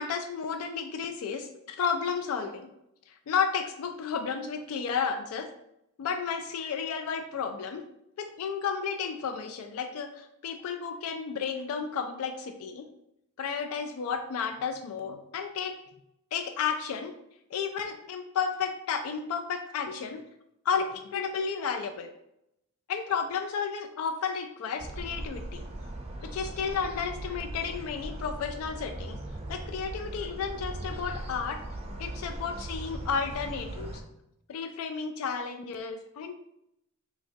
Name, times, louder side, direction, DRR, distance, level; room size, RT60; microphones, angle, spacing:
voice 1, 0.0-2.7 3.1-5.5 6.0-7.8 8.2-12.9 13.4-15.7 16.3-17.1 17.5-20.2 20.7-22.1 22.9-25.6 26.2-29.2 29.5-31.6 32.0-34.0 34.5-36.3, left 6 dB, 85° left, 7 dB, 0.3 m, -32 dB
sound 1, 24.8-34.0, right 1 dB, 30° right, 0.4 m, -39 dB
3.5 x 2.9 x 2.6 m, 0.80 s
head